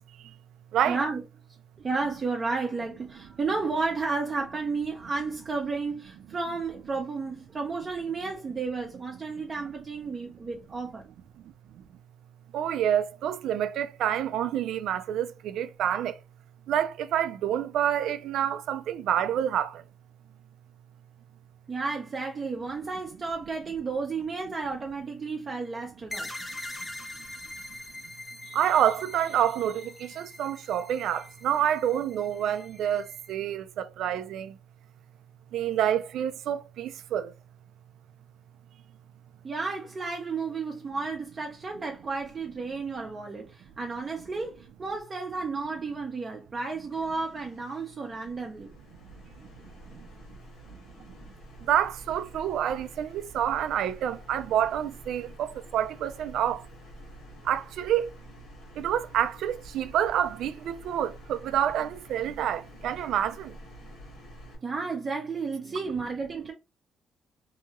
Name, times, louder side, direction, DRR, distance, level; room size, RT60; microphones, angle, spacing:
voice 1, 0.9-1.2 1.8-11.0 21.7-26.3 39.4-48.7 64.6-66.5, right 4 dB, 35° right, 0.6 m, -32 dB
voice 2, 12.5-16.2 16.7-19.8 28.5-34.6 35.5-37.3 49.9-50.1 50.7-50.8 51.7-56.7 57.4-58.1 58.8-63.6, right 10 dB, 80° right, 0.3 m, -28 dB
sound 1, 26.1-33.3, left 1 dB, 20° left, 0.7 m, -43 dB
sound 2, 46.9-64.5, equal, 90° left, 1.2 m, -49 dB
2.7 x 2.3 x 2.8 m
cardioid pair, 90°, 0 cm